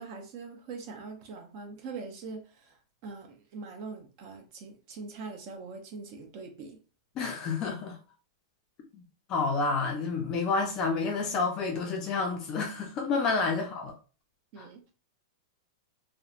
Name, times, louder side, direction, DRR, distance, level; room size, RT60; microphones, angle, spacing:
voice 1, 0.0-2.4 3.0-6.8 14.5-14.8, right 4 dB, 35° right, 0.6 m, -42 dB
voice 2, 7.2-8.0 9.3-13.9 14.6-14.7, left 4 dB, 25° left, 0.4 m, -29 dB
2.9 x 2.1 x 2.4 m
supercardioid pair, 170°, 3 cm